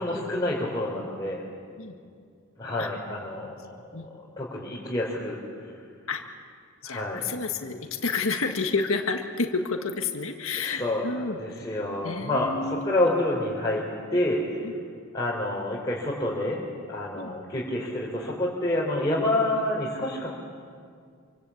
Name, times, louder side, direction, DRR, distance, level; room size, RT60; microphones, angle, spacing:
voice 1, 0.0-1.4 2.6-3.5 4.0-5.8 6.8-7.3 10.6-13.8 14.1-14.6 15.1-16.6 16.9-20.3, left 1 dB, 20° left, -6 dB, 3.9 m, -28 dB
voice 2, 6.8-11.4 11.7-11.8 12.0-13.0 14.6-14.7 17.1-17.3, left 4 dB, 70° left, 4 dB, 1.7 m, -30 dB
26.0 x 25.0 x 8.6 m, 2.2 s
head